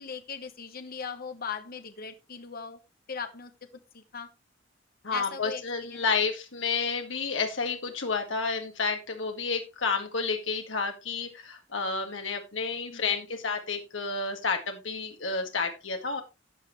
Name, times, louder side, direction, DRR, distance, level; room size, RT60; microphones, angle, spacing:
voice 1, 0.0-2.8 3.1-3.5 3.9-4.3 5.1-5.6 5.9-6.2 12.9-13.2, left 6 dB, 50° left, 9 dB, 1.0 m, -39 dB
voice 2, 5.0-16.2, left 4 dB, 75° left, 4 dB, 1.9 m, -30 dB
13.0 x 8.2 x 3.1 m, 0.25 s
head